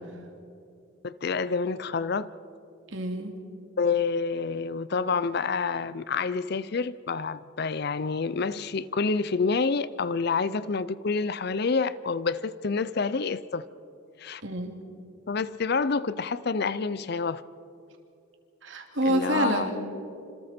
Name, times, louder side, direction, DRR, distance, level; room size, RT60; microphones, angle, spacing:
voice 1, 1.0-2.3 3.8-13.7 14.2-14.4 15.3-17.4 19.1-19.7, left 4 dB, 50° left, 0.5 m, -28 dB
voice 2, 2.9-3.3 14.4-14.7 18.6-19.7, right 1 dB, 65° right, 2.6 m, -27 dB
26.5 x 26.5 x 4.4 m
head